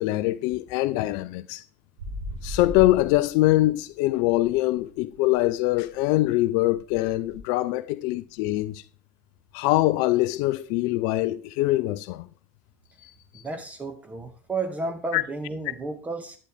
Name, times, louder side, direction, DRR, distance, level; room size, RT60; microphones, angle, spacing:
voice 1, 0.0-1.6 2.4-8.8 9.5-12.3 13.0-13.1 15.1-15.2, left 17 dB, 55° left, 0.5 m, -23 dB
sound 1, 2.0-3.8 4.1-7.4, equal, 70° right, 5.2 m, -39 dB
voice 2, 13.3-16.4, right 3 dB, 15° right, 2.1 m, -32 dB
11.5 x 8.4 x 3.5 m
figure-of-eight pair, 80°, 9 cm